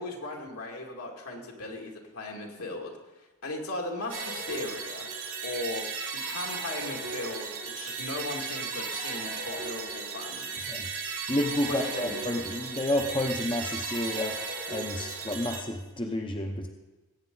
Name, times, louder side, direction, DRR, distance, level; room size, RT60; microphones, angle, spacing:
voice 1, 0.0-2.9 3.2-5.1 5.4-5.9 6.1-10.8 11.7-12.2, left 2 dB, 75° left, 0 dB, 2.4 m, -37 dB
sound 1, 4.1-15.6, right 4 dB, 80° right, 3.5 m, -36 dB
voice 2, 11.3-14.4 14.7-16.7, left 1 dB, 20° left, 3 dB, 0.8 m, -30 dB
20.0 x 8.8 x 4.0 m, 1.2 s
head